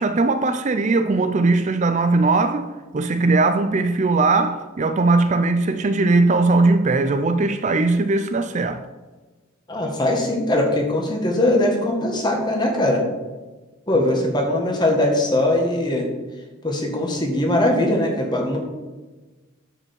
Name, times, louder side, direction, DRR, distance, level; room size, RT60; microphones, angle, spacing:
voice 1, 0.0-8.8, right 3 dB, 35° right, 0.4 m, -19 dB
voice 2, 9.7-13.0 13.9-16.1 16.6-18.6, left 1 dB, 20° left, 1.6 m, -21 dB
9.7 x 5.0 x 7.1 m
head